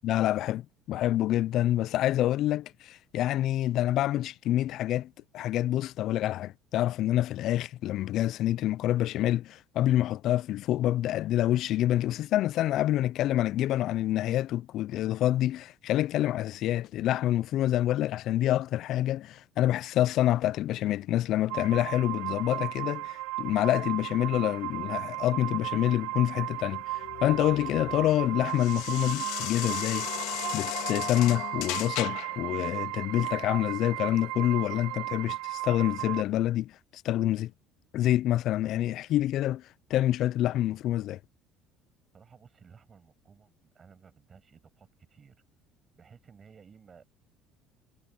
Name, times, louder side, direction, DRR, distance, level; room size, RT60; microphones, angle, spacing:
voice 1, 0.0-30.1 30.5-36.7 37.0-37.5 37.9-39.6 39.9-41.2, left 13 dB, 55° left, 0.3 m, -27 dB
sound 1, 21.5-36.2, right 18 dB, 85° right, 1.2 m, -35 dB
sound 2, 26.6-32.4, left 17 dB, 80° left, 1.7 m, -36 dB
voice 2, 42.1-45.4 45.9-47.0, right 6 dB, 30° right, 6.2 m, -56 dB
cardioid pair, 140°, 0 cm